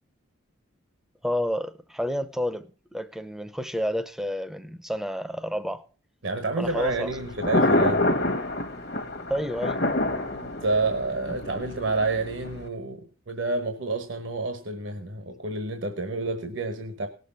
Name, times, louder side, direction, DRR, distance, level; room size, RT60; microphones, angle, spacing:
voice 1, 1.2-5.8 6.6-7.1 9.3-9.8, equal, ahead, 0.7 m, -30 dB
voice 2, 6.2-8.1 10.3-17.1, right 3 dB, 65° right, 1.2 m, -29 dB
Thunder, 6.6-12.7, left 1 dB, 50° left, 1.2 m, -27 dB
18.0 x 6.8 x 5.5 m
head